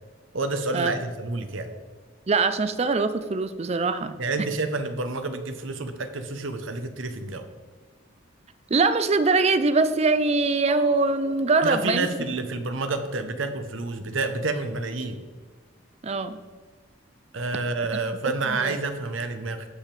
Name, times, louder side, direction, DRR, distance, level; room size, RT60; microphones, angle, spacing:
voice 1, 0.3-1.7 4.2-7.5 11.6-15.2 17.3-19.7, right 3 dB, 85° right, 8 dB, 0.9 m, -29 dB
voice 2, 2.3-4.2 8.7-12.1 16.0-16.4 17.9-18.0 18.5-18.8, right 3 dB, 35° right, 12 dB, 0.5 m, -23 dB
sound 1, 10.7-14.3, right 2 dB, 5° right, 1.5 m, -46 dB
17.0 x 5.8 x 3.4 m, 1.4 s
head